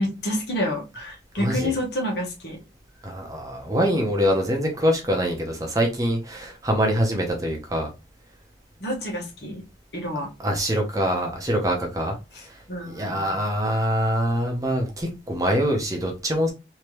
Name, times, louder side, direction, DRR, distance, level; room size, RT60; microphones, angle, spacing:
voice 1, 0.0-2.6 8.8-9.6 9.9-10.3 12.3-13.4, left 1 dB, 65° left, 1.4 m, -29 dB
voice 2, 1.4-1.7 3.0-7.9 10.4-12.2 12.4-16.5, equal, 20° right, 0.8 m, -24 dB
3.3 x 2.9 x 3.0 m
head